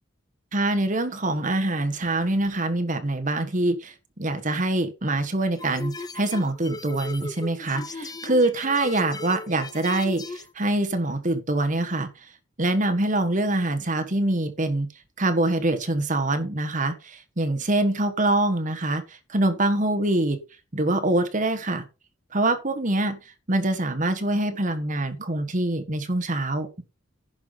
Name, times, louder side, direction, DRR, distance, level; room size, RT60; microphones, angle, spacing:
voice 1, 0.5-12.1 12.6-14.9 15.2-19.0 19.3-20.4 20.7-21.8 22.3-23.2 23.5-26.8, right 2 dB, 40° right, 1.5 m, -24 dB
sound 1, 5.6-10.5, left 2 dB, 20° left, 0.8 m, -37 dB
10.5 x 5.9 x 5.5 m
head